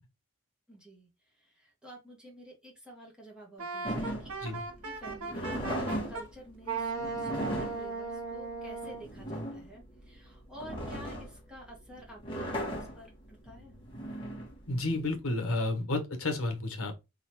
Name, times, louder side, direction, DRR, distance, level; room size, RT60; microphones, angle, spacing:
voice 1, 0.7-13.7, equal, 5° right, 1.8 m, -50 dB
Wind instrument woodwind instrument, 3.6-6.3 6.7-9.1, right 4 dB, 80° right, 1.1 m, -37 dB
sound 1, 3.8-15.2, equal, 20° left, 1.7 m, -38 dB
voice 2, 14.7-17.0, left 2 dB, 70° left, 1.2 m, -31 dB
3.9 x 3.8 x 3.0 m
head